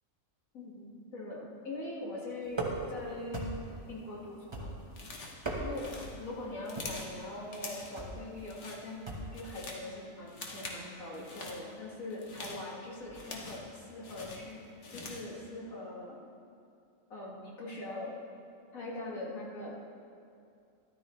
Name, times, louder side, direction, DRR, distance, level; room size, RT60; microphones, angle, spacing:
voice 1, 0.5-3.6 3.9-4.8 5.6-9.0 9.3-14.6 14.9-16.2 17.1-18.2 18.7-19.8, left 2 dB, 80° left, -4 dB, 2.3 m, -42 dB
sound 1, 2.5-3.0 3.3-3.8 4.5-5.0 5.3-6.0 6.7-7.1 8.0-8.2 9.1-9.4, right 2 dB, 20° right, 1.2 m, -37 dB
sound 2, 4.9-5.4 5.7-7.2 7.5-8.0 8.4-8.8 9.2-9.9 10.3-10.8 11.1-11.6 12.1-13.7 14.0-15.3, left 3 dB, 60° left, 1.5 m, -45 dB
13.0 x 12.0 x 3.2 m, 2.5 s
omnidirectional pair, 1.4 m